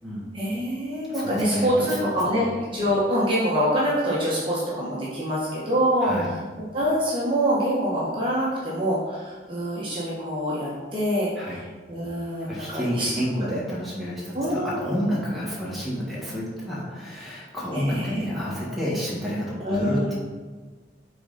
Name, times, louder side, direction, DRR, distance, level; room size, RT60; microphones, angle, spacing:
voice 1, 0.3-6.1 6.7-13.2 13.5-13.6 14.3-14.8 17.7-18.2 18.5-18.7 19.6-20.1, equal, 30° right, -7 dB, 1.1 m, -25 dB
voice 2, 1.1-2.5 6.0-6.3 11.3-11.6 12.5-20.1, equal, ahead, -8 dB, 1.6 m, -30 dB
6.8 x 3.7 x 4.1 m, 1.4 s
head